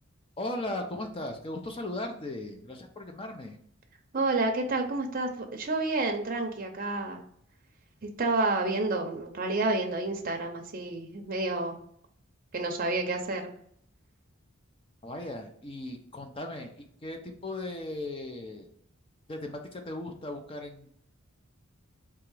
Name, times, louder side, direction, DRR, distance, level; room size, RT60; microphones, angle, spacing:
voice 1, 0.4-3.6 15.0-18.7 19.3-20.9, left 1 dB, 25° left, 4 dB, 0.5 m, -37 dB
voice 2, 4.1-7.2 8.2-11.7 12.5-13.5, right 2 dB, 45° right, 3 dB, 0.6 m, -29 dB
3.5 x 2.9 x 4.7 m, 0.66 s
head